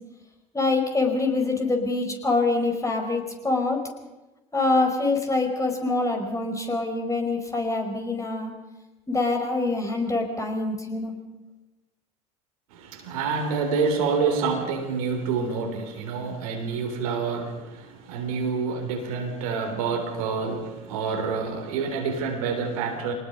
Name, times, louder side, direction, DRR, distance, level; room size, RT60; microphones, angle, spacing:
voice 1, 0.5-3.8 4.5-8.5 9.1-11.1, left 3 dB, 15° left, 4.9 m, -25 dB
voice 2, 12.7-23.1, right 5 dB, 75° right, 3.7 m, -27 dB
25.0 x 19.5 x 5.4 m
hypercardioid pair, 70°, 18 cm